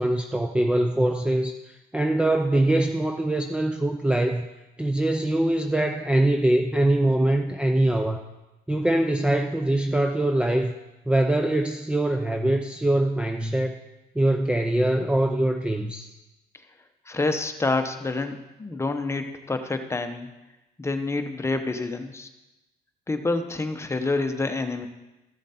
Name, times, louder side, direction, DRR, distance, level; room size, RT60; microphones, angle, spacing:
voice 1, 0.0-4.5 4.8-8.2 8.7-10.7 11.1-13.8 14.2-16.1, right 1 dB, 5° right, 5 dB, 0.5 m, -23 dB
voice 2, 17.1-20.3 20.8-22.3 23.1-24.9, left 3 dB, 15° left, 7 dB, 1.0 m, -27 dB
13.5 x 7.2 x 4.3 m, 1.0 s
cardioid pair, 110°, 17 cm